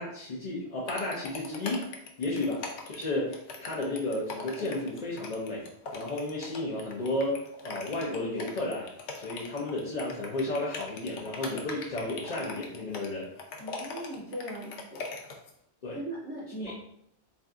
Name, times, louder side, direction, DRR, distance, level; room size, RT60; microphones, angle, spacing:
voice 1, 0.0-1.9 2.2-5.6 5.9-8.8 9.1-13.3 15.8-16.0 16.6-16.7, left 2 dB, 50° left, -6 dB, 0.6 m, -33 dB
sound 1, 0.9-15.5, left 4 dB, 80° left, 0.9 m, -41 dB
voice 2, 13.6-15.0 15.9-16.7, right 1 dB, 30° left, -6 dB, 1.2 m, -39 dB
2.5 x 2.2 x 3.6 m, 0.72 s
omnidirectional pair, 1.1 m